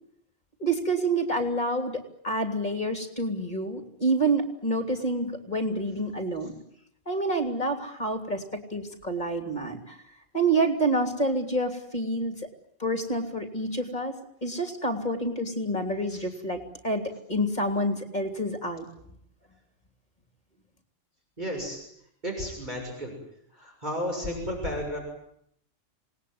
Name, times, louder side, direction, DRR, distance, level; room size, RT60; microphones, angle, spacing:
voice 1, 0.6-6.5 7.1-8.4 8.7-10.0 10.3-12.3 12.8-18.9, right 2 dB, 35° left, 5 dB, 3.3 m, -28 dB
voice 2, 21.4-21.8 22.2-23.1 23.5-25.0, equal, 35° right, 0 dB, 7.0 m, -32 dB
27.0 x 19.5 x 9.7 m, 0.73 s
omnidirectional pair, 1.3 m